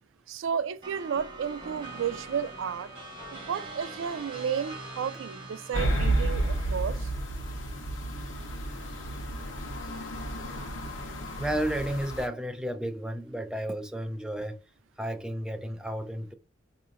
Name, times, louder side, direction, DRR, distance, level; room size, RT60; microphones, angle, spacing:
voice 1, 0.3-2.9 3.3-7.1, right 7 dB, 85° right, 0.3 m, -32 dB
sound 1, 0.8-7.0, right 2 dB, 25° right, 1.4 m, -43 dB
sound 2, 5.7-12.3, right 1 dB, 90° left, 1.0 m, -31 dB
voice 2, 11.4-14.6 15.0-16.3, right 1 dB, 5° right, 0.4 m, -32 dB
4.8 x 2.8 x 2.5 m
head